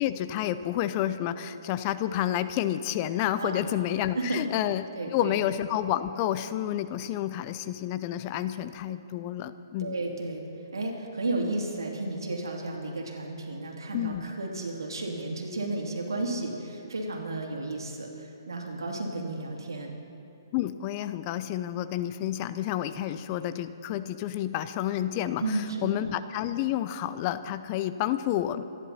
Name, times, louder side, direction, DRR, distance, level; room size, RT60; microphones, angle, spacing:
voice 1, 0.0-4.8 5.1-10.0 13.9-14.3 20.5-28.6, left 12 dB, 30° left, 12 dB, 0.5 m, -30 dB
voice 2, 4.9-5.4 9.8-10.4 10.7-19.9 25.4-26.1, right 2 dB, 85° right, 0 dB, 2.9 m, -33 dB
26.0 x 11.0 x 4.3 m, 2.9 s
hypercardioid pair, 145°, 2 cm